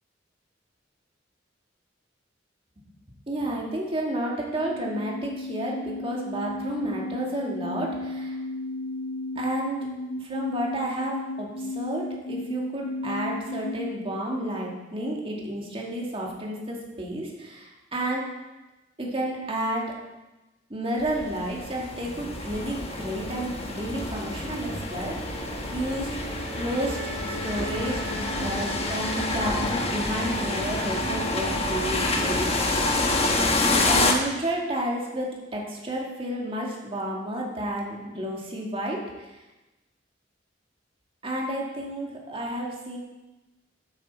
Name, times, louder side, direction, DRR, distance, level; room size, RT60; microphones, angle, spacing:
voice 1, 3.3-8.4 9.4-9.9 10.2-18.3 19.0-20.0 20.7-26.2 26.5-27.0 27.3-28.0 28.4-32.9 33.9-39.3 41.2-43.0, right 1 dB, 30° right, -2 dB, 2.2 m, -31 dB
sound 1, 4.4-14.0, left 2 dB, 65° left, 0.5 m, -34 dB
sound 2, 21.0-34.1, left 2 dB, 35° left, 1.1 m, -28 dB
sound 3, 22.2-34.2, right 2 dB, 85° right, 2.9 m, -38 dB
12.0 x 7.6 x 4.4 m, 1.1 s
head